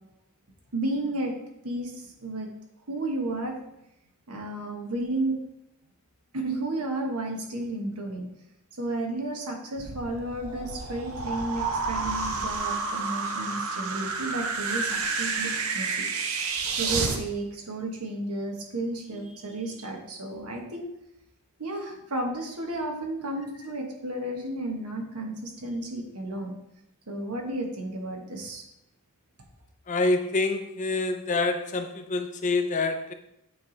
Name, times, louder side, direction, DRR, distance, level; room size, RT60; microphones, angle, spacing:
voice 1, 0.7-1.3 1.6-2.5 2.9-3.6 4.3-5.4 6.3-8.3 8.8-16.1 16.7-20.9 21.6-26.6 27.1-28.6, right 2 dB, 85° right, 2 dB, 1.3 m, -32 dB
sound 1, 9.8-17.2, right 4 dB, 70° right, 0.7 m, -30 dB
voice 2, 29.9-33.1, left 3 dB, 35° left, 7 dB, 0.5 m, -26 dB
8.6 x 3.4 x 3.9 m, 0.82 s
head